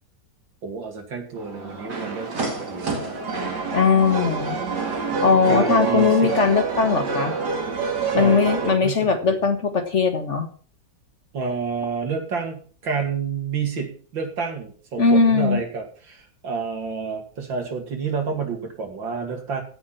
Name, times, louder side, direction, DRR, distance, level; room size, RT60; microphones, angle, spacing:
voice 1, 0.6-3.2 5.5-6.3 8.1-9.4 11.3-19.6, right 5 dB, 85° right, 3 dB, 3.1 m, -29 dB
sound 1, 1.4-8.7, right 4 dB, 65° right, 2.6 m, -27 dB
voice 2, 3.7-4.6 5.2-7.3 8.1-10.5 15.0-15.6, left 5 dB, 40° left, 8 dB, 1.5 m, -19 dB
15.5 x 6.1 x 5.9 m, 0.42 s
omnidirectional pair, 2.0 m